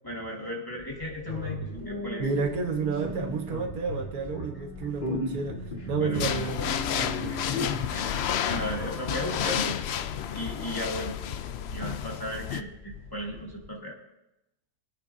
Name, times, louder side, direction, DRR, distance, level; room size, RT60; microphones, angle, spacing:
voice 1, 0.0-2.3 5.1-5.2 6.0-6.5 7.3-9.7 10.3-11.1 11.7-14.0, left 1 dB, 15° left, -2 dB, 1.9 m, -35 dB
sound 1, 0.8-13.7, left 2 dB, 35° left, 1.6 m, -39 dB
sound 2, 1.6-11.9 12.4-12.7, right 1 dB, 55° right, 1.6 m, -42 dB
voice 2, 2.2-5.6 5.9-7.4, right 4 dB, 80° right, 4 dB, 1.7 m, -31 dB
sound 3, 6.1-12.6, left 9 dB, 70° left, 0.6 m, -31 dB
24.0 x 8.8 x 2.7 m, 0.92 s
omnidirectional pair, 1.6 m